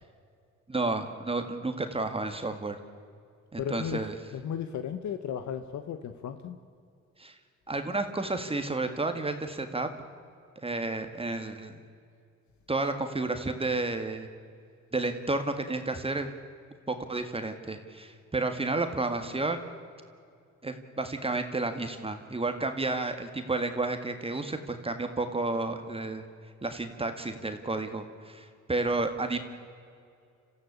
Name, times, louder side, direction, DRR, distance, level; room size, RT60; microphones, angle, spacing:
voice 1, 0.7-2.8 3.5-4.1 7.2-7.4 7.7-9.9 10.6-11.7 12.7-14.3 14.9-16.3 16.9-19.6 20.6-26.2 26.6-29.4, right 2 dB, 20° right, 7 dB, 1.9 m, -31 dB
voice 2, 3.6-4.0 4.3-6.6, left 8 dB, 70° left, 9 dB, 1.2 m, -35 dB
26.5 x 15.0 x 8.4 m, 2.4 s
cardioid pair, 90°, 30 cm